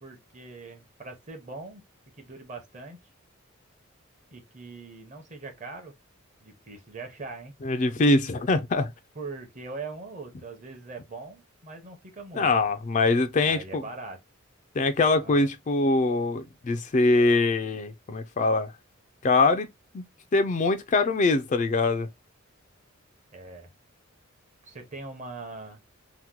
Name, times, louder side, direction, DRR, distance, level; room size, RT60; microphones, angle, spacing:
voice 1, 0.0-1.8 2.2-3.0 4.3-5.9 6.4-7.5 9.1-12.5 13.4-14.2 15.2-15.5 23.3-23.7 24.6-25.8, right 3 dB, 35° right, 0.8 m, -41 dB
voice 2, 7.6-8.9 12.3-13.8 14.7-18.7 19.2-19.7 19.9-20.1 20.3-22.1, left 3 dB, 35° left, 0.4 m, -23 dB
2.9 x 2.1 x 3.5 m
head